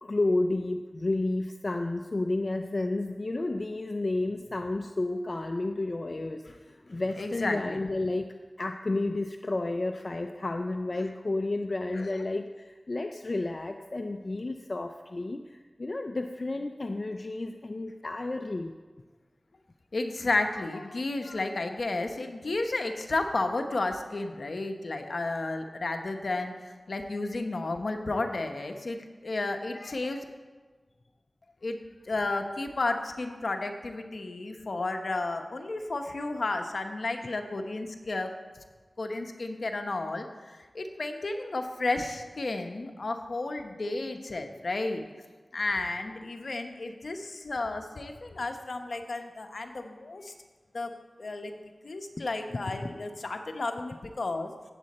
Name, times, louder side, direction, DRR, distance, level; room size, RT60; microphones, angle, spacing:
voice 1, 0.0-8.3 8.6-18.7, left 2 dB, 55° left, 5 dB, 0.6 m, -31 dB
voice 2, 7.2-7.8 12.0-12.1 19.9-26.6 26.9-30.2 31.6-31.8 32.1-38.3 39.0-45.0 45.5-50.3 50.7-51.5 51.8-54.5, left 2 dB, 75° left, 5 dB, 1.0 m, -32 dB
16.5 x 7.6 x 4.3 m, 1.4 s
cardioid pair, 40°, 0 cm